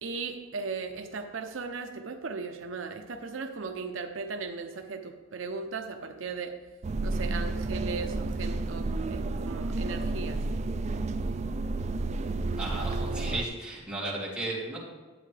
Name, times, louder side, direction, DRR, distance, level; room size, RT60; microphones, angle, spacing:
voice 1, 0.0-6.5 7.0-10.4, right 4 dB, 80° right, 5 dB, 0.7 m, -37 dB
sound 1, 6.8-13.4, right 2 dB, 35° right, 0.4 m, -31 dB
voice 2, 12.6-14.8, right 2 dB, 5° right, -7 dB, 2.7 m, -34 dB
11.0 x 8.2 x 3.3 m, 1.3 s
head